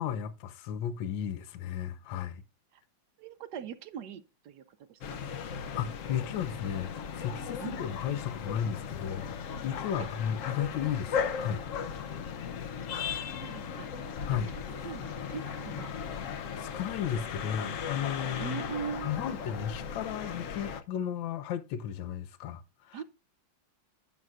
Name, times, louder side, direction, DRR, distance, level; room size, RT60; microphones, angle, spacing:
voice 1, 0.0-2.4 5.7-9.3 9.6-11.6 14.3-14.5 16.3-18.6 19.0-23.0, left 9 dB, 80° left, 1.5 m, -34 dB
voice 2, 3.2-5.2 7.6-7.8 13.3-13.9 14.7-15.9 18.4-19.2 22.9-23.0, right 8 dB, 70° right, 1.1 m, -41 dB
sound 1, 5.0-20.8, left 7 dB, 60° left, 0.8 m, -37 dB
11.0 x 7.8 x 2.4 m
omnidirectional pair, 2.1 m